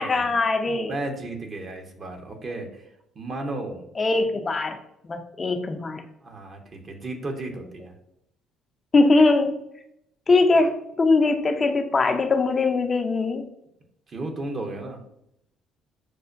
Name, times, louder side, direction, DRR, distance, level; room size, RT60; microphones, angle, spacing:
voice 1, 0.0-0.9 4.0-4.8 5.0-6.0 8.9-9.6 10.3-13.4, left 3 dB, 35° left, 5 dB, 0.5 m, -21 dB
voice 2, 0.9-2.9 3.1-3.8 6.2-7.9 14.1-15.0, right 2 dB, 45° right, 3 dB, 0.9 m, -34 dB
6.4 x 2.1 x 2.5 m, 0.78 s
supercardioid pair, 65°, 0 cm